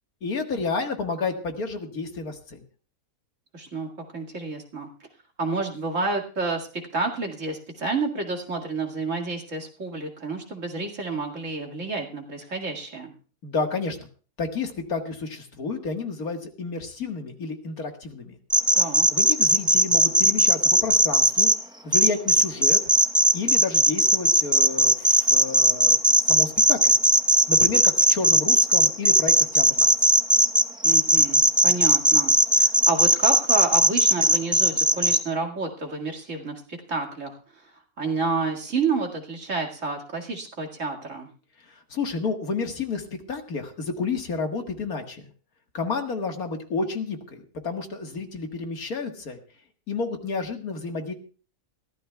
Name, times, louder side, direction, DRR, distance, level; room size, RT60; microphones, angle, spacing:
voice 1, 0.2-2.6 13.4-14.1 14.4-18.4 19.1-21.5 21.8-22.8 23.3-26.0 26.2-27.0 27.5-29.9 41.6-45.3 45.7-49.4 49.9-51.1, left 4 dB, 75° left, 4 dB, 2.1 m, -30 dB
voice 2, 3.5-4.9 5.4-13.1 18.8-19.1 30.8-32.3 32.6-37.7 38.0-41.3, right 3 dB, 55° right, 1 dB, 2.4 m, -30 dB
sound 1, 18.5-21.5 21.9-35.2, right 1 dB, 5° right, 0.6 m, -18 dB
22.5 x 15.5 x 2.3 m, 0.39 s
omnidirectional pair, 1.6 m